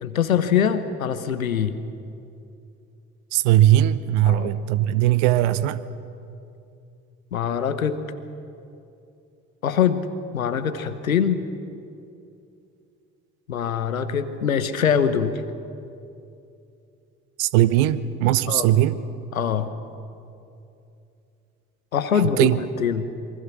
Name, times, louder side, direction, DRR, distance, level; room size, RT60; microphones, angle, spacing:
voice 1, 0.0-1.8 4.3-4.5 7.3-8.0 9.6-10.0 10.3-11.4 13.5-15.4 18.5-18.7 19.3-19.7 21.9-23.1, left 8 dB, 80° left, 12 dB, 1.2 m, -23 dB
voice 2, 3.3-5.8 17.4-19.0 22.4-22.6, right 13 dB, 65° right, 15 dB, 1.0 m, -19 dB
27.0 x 24.0 x 6.3 m, 2.7 s
figure-of-eight pair, 50°, 41 cm